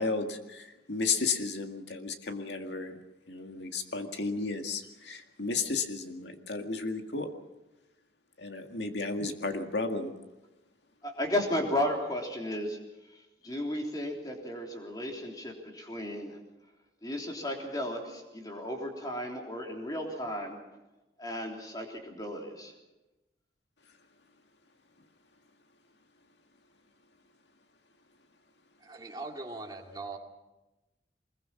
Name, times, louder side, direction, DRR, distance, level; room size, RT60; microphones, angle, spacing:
voice 1, 0.0-3.0 3.3-7.3 8.4-10.1, left 4 dB, 75° left, 5 dB, 2.0 m, -33 dB
voice 2, 11.0-12.8 13.1-13.2 13.4-16.4 17.0-20.6 21.2-22.7, left 1 dB, 20° left, 1 dB, 3.5 m, -34 dB
voice 3, 28.8-30.2, right 3 dB, 20° right, 0 dB, 2.4 m, -41 dB
24.0 x 21.5 x 6.0 m, 1.0 s
head